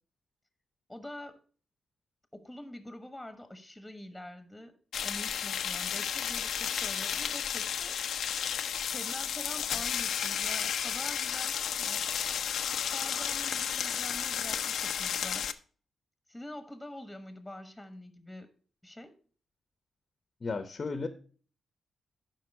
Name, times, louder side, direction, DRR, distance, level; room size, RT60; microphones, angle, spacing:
voice 1, 0.9-1.4 2.3-4.8 5.0-8.0 8.8-12.1 12.9-15.5 16.3-18.5 18.8-19.2, left 1 dB, 5° left, 9 dB, 1.3 m, -45 dB
sound 1, 4.9-15.5, left 8 dB, 80° left, 0.5 m, -32 dB
voice 2, 20.4-21.1, left 4 dB, 45° left, 10 dB, 0.8 m, -34 dB
11.0 x 4.7 x 4.7 m, 0.43 s
cardioid pair, 60°, 0 cm